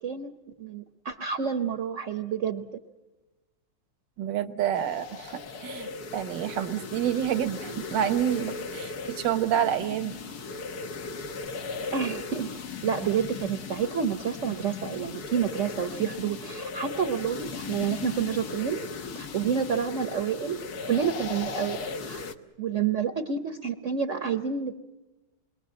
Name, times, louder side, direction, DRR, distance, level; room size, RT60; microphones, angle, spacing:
voice 1, 0.0-2.7 11.9-12.5 12.8-20.6 20.9-22.2 22.6-24.8, right 7 dB, 50° right, 8 dB, 1.1 m, -29 dB
voice 2, 4.2-10.2, right 10 dB, 75° right, 11 dB, 1.7 m, -28 dB
sound 1, 4.7-22.3, left 4 dB, 60° left, 1.7 m, -37 dB
28.0 x 22.0 x 7.7 m, 1.1 s
omnidirectional pair, 2.0 m